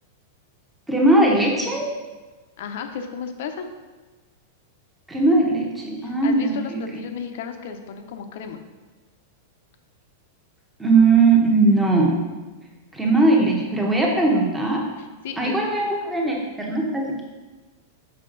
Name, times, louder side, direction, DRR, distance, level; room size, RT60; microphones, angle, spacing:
voice 1, 0.9-1.9 5.1-7.0 10.8-12.2 12.9-14.8 15.4-17.2, right 2 dB, 5° right, -2 dB, 0.9 m, -19 dB
voice 2, 2.6-3.7 6.0-8.6 15.0-15.6, left 6 dB, 60° left, 7 dB, 0.7 m, -34 dB
5.9 x 5.6 x 3.9 m, 1.3 s
supercardioid pair, 165°, 0 cm